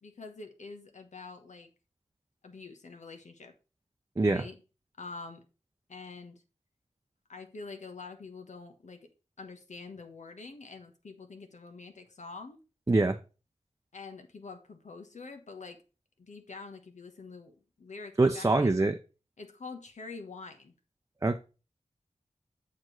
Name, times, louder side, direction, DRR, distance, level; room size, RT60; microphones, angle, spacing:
voice 1, 0.0-1.7 2.4-3.5 4.2-4.6 5.0-5.4 5.9-6.4 7.3-9.1 9.4-12.6 13.9-15.8 16.2-18.8 19.4-20.7, left 4 dB, 80° left, 1.2 m, -46 dB
voice 2, 12.9-13.2 18.2-19.0 21.2-21.4, right 2 dB, 25° right, 0.6 m, -24 dB
7.3 x 4.5 x 4.6 m
wide cardioid pair, 65°, 12 cm